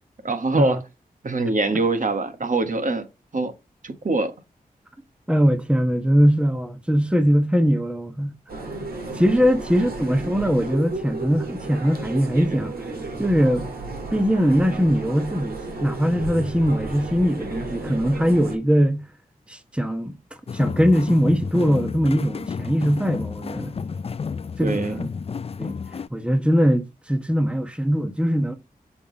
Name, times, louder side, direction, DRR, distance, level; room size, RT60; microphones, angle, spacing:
voice 1, 0.2-0.8 1.2-3.1 3.3-3.5 3.8-4.3 24.6-25.1, right 2 dB, 55° right, 1.5 m, -23 dB
voice 2, 5.3-8.3 9.1-12.7 13.2-13.7 14.1-19.0 19.5-20.1 20.5-23.7 24.6-25.1 25.6-25.8 26.1-28.6, equal, 5° right, 1.1 m, -21 dB
sound 1, 8.5-18.6, right 2 dB, 80° right, 2.0 m, -33 dB
sound 2, 20.5-26.1, left 5 dB, 40° left, 0.4 m, -31 dB
7.1 x 3.5 x 4.0 m
cardioid pair, 40°, 16 cm